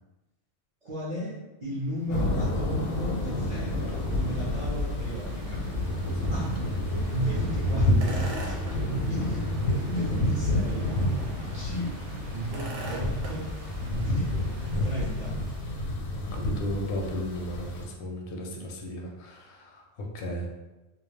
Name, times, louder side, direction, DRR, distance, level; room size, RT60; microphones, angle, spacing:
voice 1, 0.8-5.6 6.3-6.5 7.1-10.9 11.5-11.9 12.3-13.5 13.8-14.3 14.8-15.3, equal, 45° right, -8 dB, 0.6 m, -34 dB
sound 1, 1.8-15.9, right 2 dB, 75° right, 0.9 m, -42 dB
sound 2, 2.1-17.8, left 1 dB, 85° left, 1.0 m, -29 dB
voice 2, 16.1-20.5, left 1 dB, 60° left, 0 dB, 0.6 m, -35 dB
2.3 x 2.1 x 3.1 m, 1.0 s
omnidirectional pair, 1.2 m